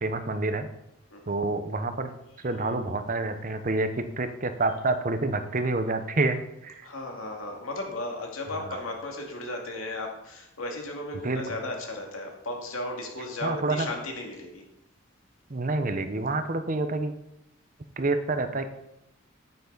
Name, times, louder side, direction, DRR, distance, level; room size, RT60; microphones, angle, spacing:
voice 1, 0.0-0.7 1.3-2.1 2.4-6.7 11.2-11.4 13.4-13.9 15.5-17.1 18.0-18.7, right 2 dB, 40° right, 9 dB, 0.8 m, -28 dB
voice 2, 6.8-14.6, left 2 dB, 85° left, 1 dB, 2.2 m, -35 dB
9.5 x 9.5 x 4.0 m, 0.83 s
head